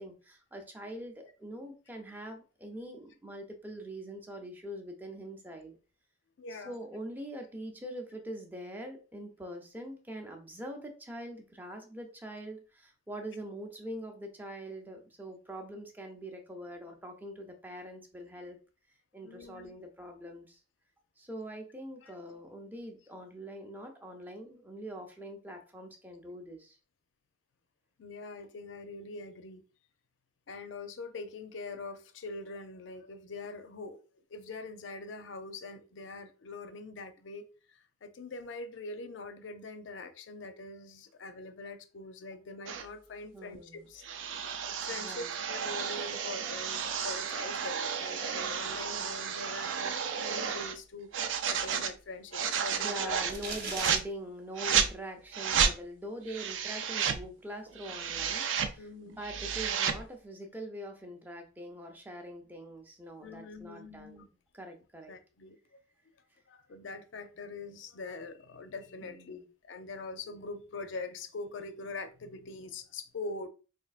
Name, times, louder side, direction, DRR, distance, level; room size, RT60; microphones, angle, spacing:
voice 1, 0.0-5.8 6.5-18.6 19.1-20.6 21.2-26.8 43.3-43.9 45.0-45.4 52.7-64.2 64.5-65.1 69.0-69.5, right 1 dB, 10° right, 0.6 m, -43 dB
voice 2, 6.4-6.8 19.2-19.7 22.0-22.1 28.0-29.6 30.5-34.0 34.3-44.0 44.4-53.2 58.8-59.2 63.2-64.3 65.1-65.8 66.5-73.5, left 3 dB, 75° left, 0.5 m, -43 dB
sound 1, 42.7-42.9 44.0-50.8 51.1-51.9 52.3-53.4 53.7-54.0 54.6-54.9 55.3-55.7 56.3-57.2 57.7-58.7 59.1-60.0, right 7 dB, 80° right, 0.5 m, -32 dB
sound 2, 53.3-54.0, right 3 dB, 50° right, 0.7 m, -37 dB
4.3 x 2.7 x 2.4 m
head